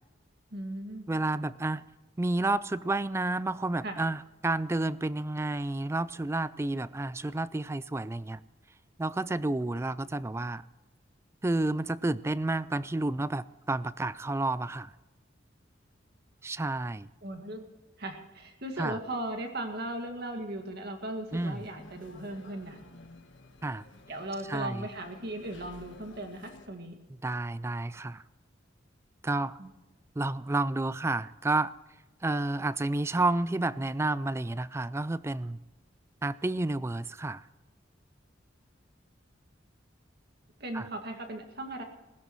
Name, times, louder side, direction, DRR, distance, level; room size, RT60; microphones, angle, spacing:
voice 1, 0.5-1.1 3.8-4.0 17.2-17.6 18.0-22.8 24.1-27.0 29.6-29.7 33.2-33.3 40.6-41.8, right 1 dB, 55° right, 4 dB, 2.1 m, -37 dB
voice 2, 1.1-1.8 2.2-8.4 9.0-10.6 11.4-14.9 16.4-17.1 18.8-19.0 21.3-21.6 23.6-23.8 24.5-24.8 27.2-28.2 29.2-29.6 30.2-31.7 32.2-35.6 36.2-37.4 40.7-40.9, right 2 dB, 15° right, 17 dB, 0.3 m, -30 dB
sound 1, 21.3-26.7, left 2 dB, 80° left, 1.4 m, -53 dB
20.0 x 16.5 x 3.1 m, 1.1 s
head